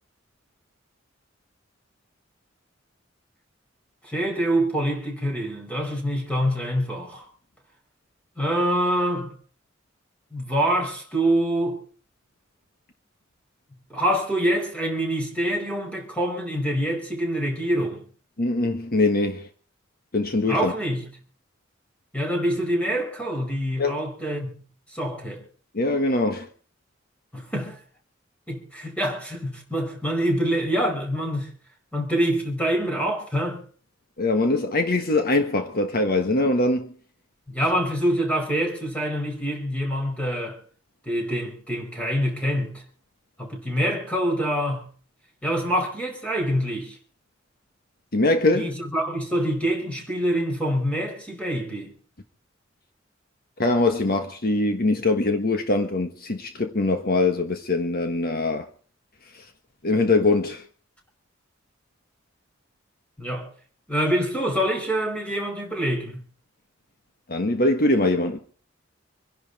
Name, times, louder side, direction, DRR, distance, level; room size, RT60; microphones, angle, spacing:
voice 1, 4.0-7.3 8.4-9.3 10.3-11.8 13.9-18.0 20.5-21.1 22.1-24.6 24.9-25.4 27.3-27.8 28.5-31.5 31.9-33.6 37.5-40.6 41.1-42.8 43.4-44.9 45.4-47.0 48.5-51.9 63.2-63.5 63.9-66.2, equal, 5° left, 5.3 m, -25 dB
voice 2, 18.4-19.5 20.1-20.7 23.8-24.0 25.7-26.5 34.2-36.9 48.1-48.7 53.6-58.7 59.3-59.4 59.8-60.6 67.3-68.4, left 2 dB, 50° left, 1.4 m, -22 dB
26.5 x 11.0 x 4.2 m
head